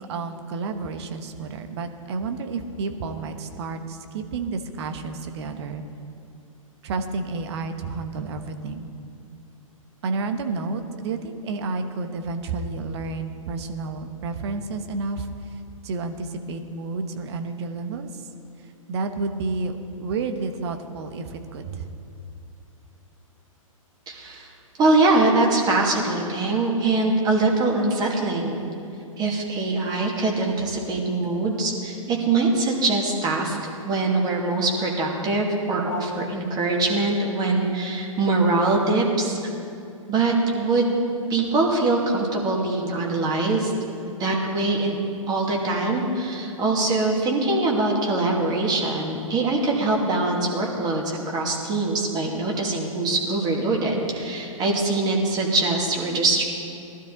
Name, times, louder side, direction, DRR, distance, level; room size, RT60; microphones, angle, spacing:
voice 1, 0.1-5.8 6.8-8.9 10.0-18.3 18.9-21.9, right 3 dB, 50° right, 7 dB, 1.2 m, -30 dB
voice 2, 24.1-24.5 24.8-28.6 29.2-39.4 40.1-41.0 41.3-43.7 44.2-45.0 45.3-56.4, right 2 dB, 20° right, -1 dB, 2.4 m, -23 dB
19.0 x 12.5 x 4.0 m, 2.5 s
figure-of-eight pair, 115°, 18 cm